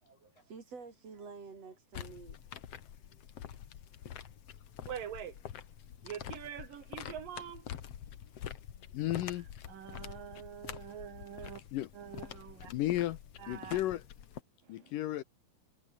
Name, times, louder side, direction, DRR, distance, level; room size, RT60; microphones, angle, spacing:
voice 1, 0.0-2.4, right 4 dB, 40° right, 4.1 m, -49 dB
sound 1, 1.9-14.4, left 9 dB, 55° left, 1.7 m, -47 dB
voice 2, 4.9-5.4 6.0-7.7 9.7-11.6 11.9-12.7 13.4-13.8 14.7-14.9, right 9 dB, 60° right, 3.4 m, -44 dB
voice 3, 8.9-9.5 11.7-11.9 12.7-13.2 13.5-14.0 14.7-15.2, left 14 dB, 75° left, 2.0 m, -33 dB
omnidirectional pair, 4.9 m